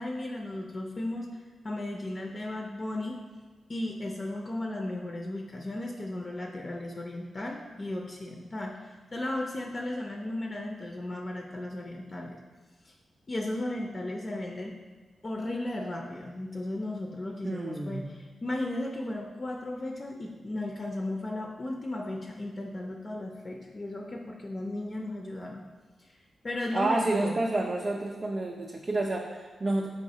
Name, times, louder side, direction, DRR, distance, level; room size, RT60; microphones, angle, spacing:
voice 1, 0.0-3.2 3.7-12.4 12.8-12.9 13.3-14.8 15.2-25.6 26.0-26.1 26.4-27.4, left 1 dB, 40° left, 0 dB, 0.4 m, -35 dB
voice 2, 17.4-18.1 26.7-29.9, right 2 dB, 35° right, -1 dB, 0.4 m, -29 dB
4.6 x 3.1 x 2.8 m, 1.3 s
cardioid pair, 85°, 0 cm